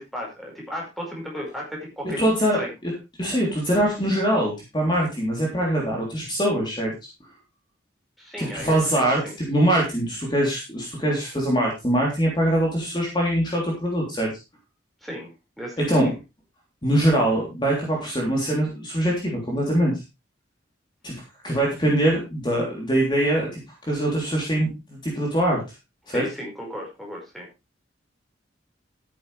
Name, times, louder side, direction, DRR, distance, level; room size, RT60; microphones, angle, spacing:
voice 1, 0.0-2.2 2.6-2.7 8.2-9.3 15.0-15.3 15.6-16.2 26.1-27.5, equal, ahead, -1 dB, 5.1 m, -35 dB
voice 2, 2.2-2.9 3.2-6.9 8.4-14.3 15.9-16.1 16.8-20.0 21.0-21.1 21.4-25.6 26.1-26.2, right 1 dB, 25° left, -2 dB, 3.3 m, -23 dB
13.0 x 9.5 x 3.3 m, 0.25 s
head